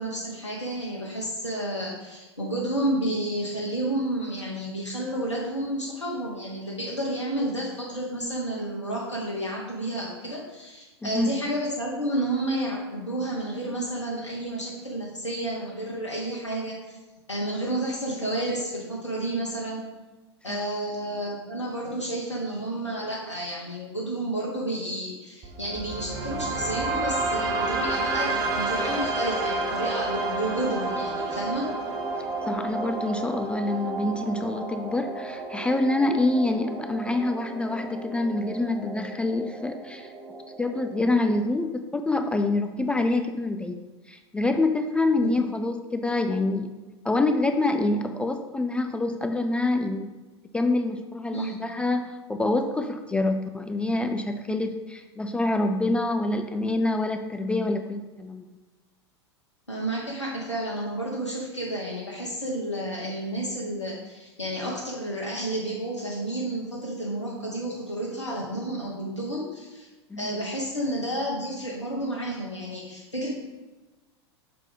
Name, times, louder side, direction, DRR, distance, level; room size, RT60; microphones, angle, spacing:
voice 1, 0.0-17.0 17.3-19.9 20.4-31.7 45.2-45.3 51.3-51.6 54.5-54.7 59.7-69.9 70.2-73.3, right 1 dB, 85° left, -4 dB, 1.1 m, -31 dB
sound 1, 25.4-41.4, right 3 dB, 25° right, 1.1 m, -31 dB
voice 2, 32.5-40.1 40.6-43.8 44.1-46.7 47.0-50.1 50.5-58.4 70.1-70.4, left 2 dB, 5° left, 6 dB, 0.3 m, -26 dB
6.6 x 4.4 x 3.9 m, 1.2 s
figure-of-eight pair, 90°, 15 cm